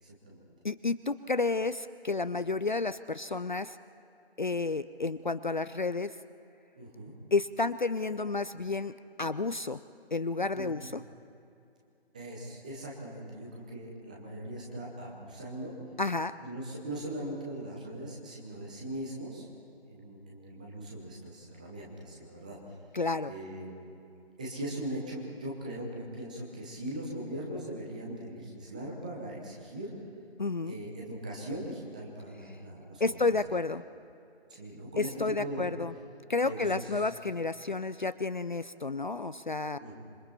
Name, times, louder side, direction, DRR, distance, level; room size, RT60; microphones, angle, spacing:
voice 1, 0.0-0.5 6.8-7.1 10.5-10.7 12.1-15.7 16.4-19.5 19.9-22.6 23.2-23.7 24.4-29.9 30.7-33.3 34.5-35.1 35.4-35.7 36.4-37.1 39.8-40.0, right 1 dB, 5° right, -2 dB, 0.9 m, -40 dB
voice 2, 0.6-3.8 4.4-6.1 7.3-8.9 9.2-9.8 10.1-11.0 16.0-16.3 22.9-23.3 30.4-30.7 33.0-33.8 35.0-35.9 36.3-39.8, left 3 dB, 50° left, 13 dB, 0.5 m, -31 dB
26.5 x 23.0 x 4.3 m, 2.7 s
figure-of-eight pair, 155°, 32 cm